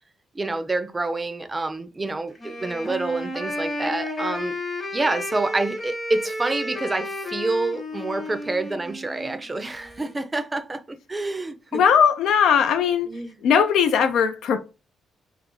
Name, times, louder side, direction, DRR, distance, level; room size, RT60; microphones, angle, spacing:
voice 1, 0.3-4.5 4.9-11.8 13.1-13.4, right 2 dB, 20° right, 0.5 m, -27 dB
Wind instrument woodwind instrument, 2.4-10.2, left 1 dB, 40° left, 1.1 m, -32 dB
voice 2, 11.7-13.1 13.4-14.6, left 7 dB, 75° left, 0.3 m, -19 dB
2.5 x 2.4 x 3.9 m
cardioid pair, 90°, 0 cm